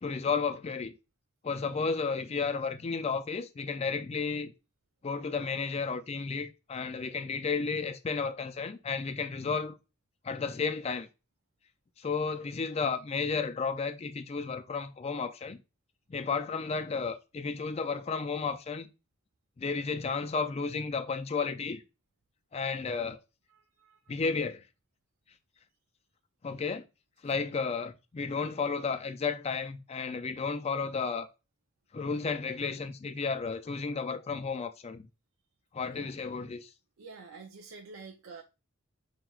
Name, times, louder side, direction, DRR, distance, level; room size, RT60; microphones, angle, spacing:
voice 1, 0.0-0.9 1.4-4.5 5.0-9.8 10.2-11.1 12.0-15.6 16.1-18.9 19.6-21.8 22.5-23.2 24.1-24.6 26.4-26.8 27.2-31.3 31.9-35.1 35.7-36.7, left 5 dB, 30° left, 0.3 m, -33 dB
voice 2, 23.5-24.0 27.3-27.4 35.9-36.1 37.0-38.4, right 4 dB, 75° right, 0.5 m, -48 dB
5.7 x 2.8 x 2.3 m
head